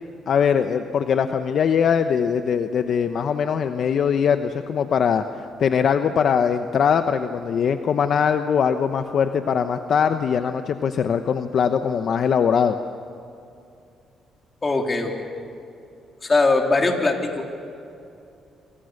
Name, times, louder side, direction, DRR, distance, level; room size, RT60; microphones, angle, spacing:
voice 1, 0.3-12.8, left 7 dB, 60° left, 8 dB, 1.0 m, -21 dB
voice 2, 14.6-15.1 16.2-17.5, left 3 dB, 30° left, 2 dB, 3.8 m, -20 dB
28.0 x 25.5 x 6.6 m, 2.6 s
cardioid pair, 90°, 0 cm